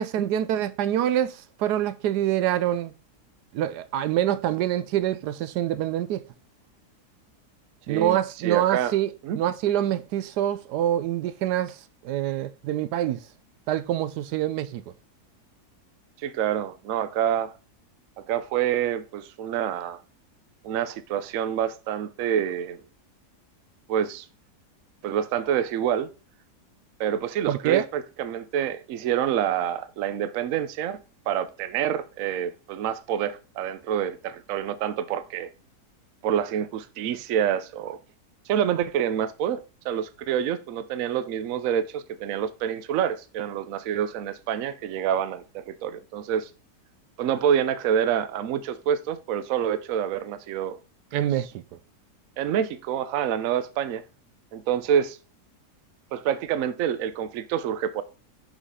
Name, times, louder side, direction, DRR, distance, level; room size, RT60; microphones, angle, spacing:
voice 1, 0.0-2.9 3.5-6.2 7.9-9.1 9.3-11.8 12.0-13.2 13.7-14.8 27.5-27.8 51.1-51.6, right 11 dB, 85° right, 1.2 m, -25 dB
voice 2, 7.9-8.9 9.2-9.4 16.2-17.5 18.2-20.0 20.6-22.8 23.9-24.2 25.0-26.1 27.0-31.0 31.3-35.5 36.2-38.0 38.5-46.5 47.2-50.8 51.4-51.5 52.4-54.0 54.5-55.2 56.1-58.0, right 9 dB, 65° right, 0.9 m, -27 dB
6.0 x 4.0 x 5.5 m
omnidirectional pair, 1.7 m